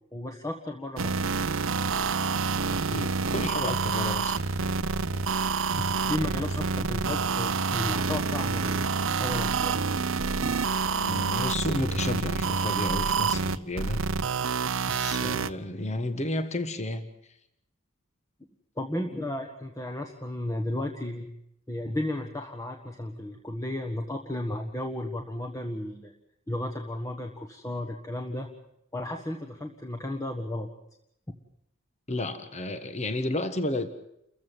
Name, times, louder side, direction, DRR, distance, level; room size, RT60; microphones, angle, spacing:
voice 1, 0.1-1.4 5.8-9.8 10.4-10.6 18.8-21.3 21.7-26.1 26.5-28.5 28.9-30.7, left 1 dB, 15° left, 3 dB, 1.5 m, -34 dB
sound 1, 1.0-15.5, right 4 dB, 70° right, 0.8 m, -28 dB
voice 2, 2.7-4.4 10.9-14.0 14.9-17.0 32.1-33.9, left 1 dB, 35° left, 9 dB, 1.4 m, -32 dB
29.5 x 15.0 x 7.4 m, 0.77 s
head